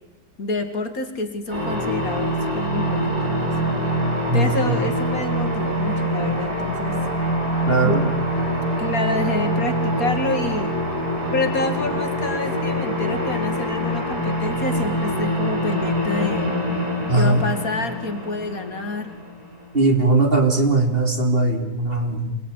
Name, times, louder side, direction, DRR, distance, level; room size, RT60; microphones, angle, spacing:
voice 1, 0.4-3.5 4.3-7.0 7.8-8.0 8.8-10.8 11.3-16.6 17.2-19.1, left 2 dB, 60° left, 7 dB, 2.8 m, -28 dB
sound 1, 1.5-19.8, equal, 70° right, 8.4 m, -24 dB
voice 2, 4.3-4.8 7.7-8.1 17.1-17.4 19.7-22.4, right 2 dB, 35° right, 3 dB, 3.4 m, -19 dB
27.5 x 19.5 x 9.9 m, 1.0 s
omnidirectional pair, 1.7 m